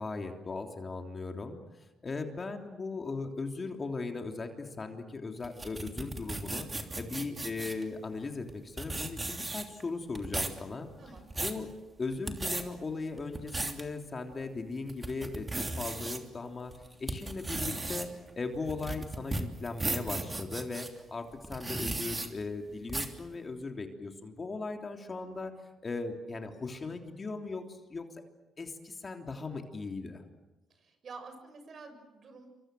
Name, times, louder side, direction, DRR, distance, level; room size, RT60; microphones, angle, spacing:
voice 1, 0.0-1.6 2.0-10.9 11.4-11.7 12.0-16.7 17.0-25.5 25.8-28.0 28.6-30.2, left 3 dB, 35° left, 4 dB, 3.3 m, -38 dB
sound 1, 5.4-7.8 8.5-8.6 8.8-9.8 10.1-10.6 11.1-11.6 12.1-12.6 13.2-13.8 14.3-14.4 14.9-16.2 16.7-20.9 21.4-22.3 22.9-23.2, right 2 dB, 20° right, 3.1 m, -35 dB
voice 2, 6.9-7.2 11.0-11.3 30.7-32.5, right 4 dB, 50° right, 7 dB, 7.1 m, -49 dB
28.5 x 24.5 x 7.8 m, 1.0 s
cardioid pair, 90°, 0 cm